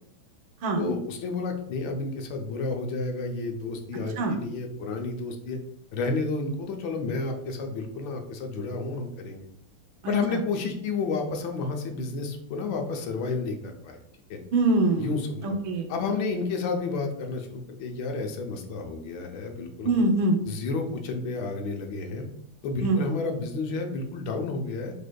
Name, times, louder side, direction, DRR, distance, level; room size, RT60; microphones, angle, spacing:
voice 1, 0.8-5.6 5.9-9.4 10.1-14.0 14.3-14.4 15.0-15.6 15.9-20.1 20.5-22.3 22.6-24.9, left 3 dB, 75° left, 3 dB, 1.4 m, -31 dB
voice 2, 10.0-10.4 14.5-15.9 19.8-20.4 22.8-23.0, right 2 dB, 75° right, 3 dB, 1.5 m, -24 dB
5.1 x 3.6 x 2.2 m, 0.70 s
omnidirectional pair, 2.2 m